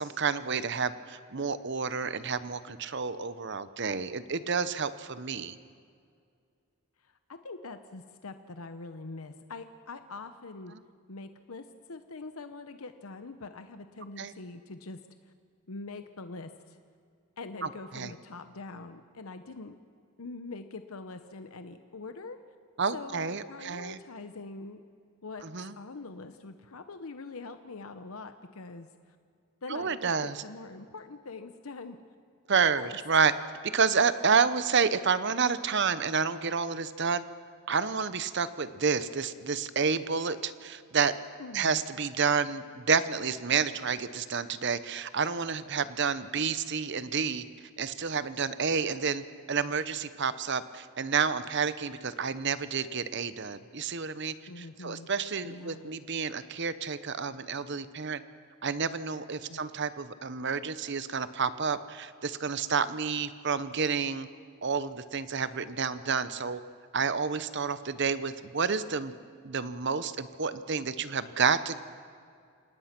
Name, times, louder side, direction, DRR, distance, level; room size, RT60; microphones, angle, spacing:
voice 1, 0.0-5.5 14.2-14.3 17.9-18.1 22.8-24.0 25.4-25.7 29.7-30.3 32.5-33.3 33.7-37.2 37.7-41.1 41.5-47.4 47.8-58.2 58.6-64.3 64.6-66.6 66.9-69.1 69.4-71.8, right 5 dB, 55° right, 14 dB, 0.9 m, -29 dB
voice 2, 7.0-10.7 11.1-15.3 15.7-16.8 17.4-19.8 20.2-22.4 22.9-24.8 25.2-25.5 25.8-29.2 29.6-32.0 32.8-33.0 41.4-41.8 54.5-55.1 55.4-55.9 59.5-59.6, left 3 dB, 80° left, 9 dB, 0.9 m, -43 dB
28.0 x 18.5 x 6.0 m, 2.3 s
head